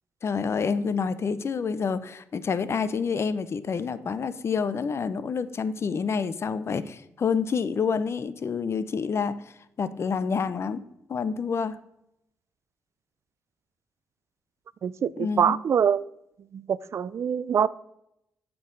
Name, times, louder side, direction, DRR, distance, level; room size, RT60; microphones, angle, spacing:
voice 1, 0.2-10.8 11.1-11.8 15.2-15.6, left 5 dB, 50° left, 15 dB, 0.5 m, -28 dB
voice 2, 14.8-16.0 16.5-17.7, right 8 dB, 55° right, 20 dB, 0.4 m, -24 dB
13.5 x 4.6 x 3.8 m, 0.81 s
cardioid pair, 70°, 6 cm